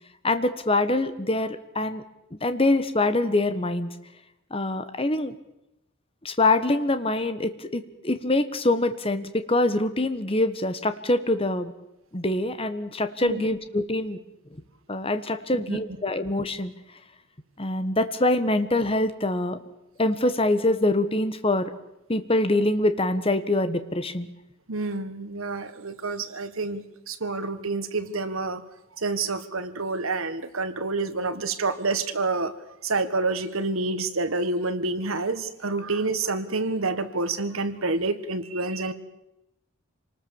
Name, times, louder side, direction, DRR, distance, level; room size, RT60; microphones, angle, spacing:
voice 1, 0.2-2.0 2.4-3.9 4.5-5.3 6.2-11.7 12.1-14.2 14.9-16.7 17.6-19.6 20.0-21.7 22.1-24.3, left 2 dB, 25° left, 10 dB, 1.3 m, -24 dB
voice 2, 24.7-28.6 29.0-32.5 32.8-38.9, right 3 dB, 75° right, 10 dB, 1.7 m, -28 dB
27.0 x 19.5 x 7.2 m, 0.87 s
head